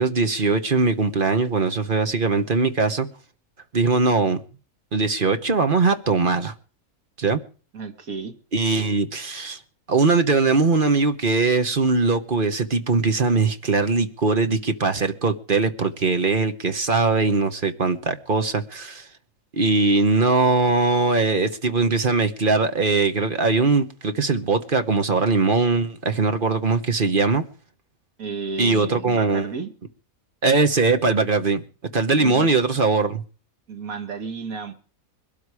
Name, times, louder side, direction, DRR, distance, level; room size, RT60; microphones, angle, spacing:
voice 1, 0.0-3.1 3.7-4.4 4.9-6.5 7.2-7.4 8.5-9.6 9.9-19.1 19.6-27.4 28.6-29.5 30.4-31.6 31.9-33.2, right 4 dB, 40° right, 1.2 m, -21 dB
voice 2, 7.7-8.3 28.2-29.7 32.1-32.5 33.7-34.7, right 5 dB, 80° right, 2.2 m, -32 dB
21.5 x 12.5 x 4.8 m
omnidirectional pair, 1.5 m